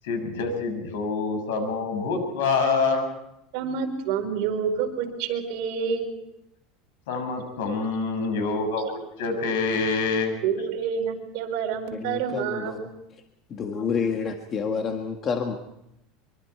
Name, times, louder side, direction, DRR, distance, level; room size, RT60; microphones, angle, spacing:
voice 1, 0.0-3.0 7.1-10.3, left 4 dB, 90° left, 6 dB, 6.7 m, -26 dB
voice 2, 3.5-6.1 10.4-12.9, right 7 dB, 55° right, 2 dB, 4.8 m, -28 dB
voice 3, 11.9-12.9 13.5-15.6, left 6 dB, 25° left, 4 dB, 1.6 m, -29 dB
24.5 x 24.0 x 4.7 m, 0.81 s
supercardioid pair, 165°, 0 cm